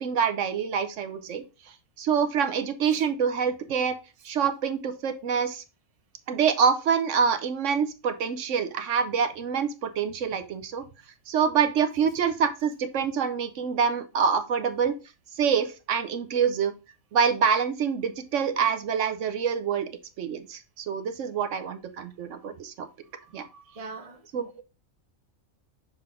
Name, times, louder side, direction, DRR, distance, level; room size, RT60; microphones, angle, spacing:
voice 1, 0.0-1.4 2.0-4.0 4.2-5.6 6.3-10.8 11.3-14.9 15.4-16.7 17.1-19.9 20.2-22.9 23.3-23.5 24.3-24.5, right 6 dB, 65° right, 1.0 m, -26 dB
voice 2, 23.1-24.2, right 4 dB, 30° right, 0.9 m, -43 dB
6.7 x 3.9 x 3.6 m
omnidirectional pair, 1.4 m